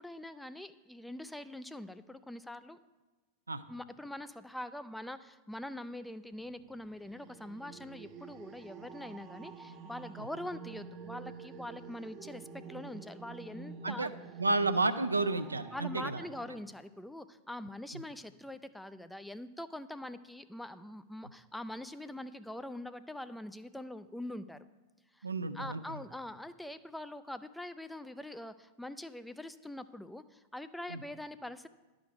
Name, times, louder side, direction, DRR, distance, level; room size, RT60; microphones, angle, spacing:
voice 1, 0.0-2.8 3.7-14.1 15.7-24.6 25.1-25.3 25.5-31.7, left 1 dB, 5° left, 12 dB, 0.3 m, -44 dB
sound 1, 6.4-16.6, right 5 dB, 35° right, 0.6 m, -49 dB
voice 2, 14.4-16.2 25.2-25.8 30.9-31.0, right 3 dB, 80° right, 11 dB, 0.4 m, -31 dB
11.0 x 5.1 x 4.9 m, 1.2 s
figure-of-eight pair, 90°, 0 cm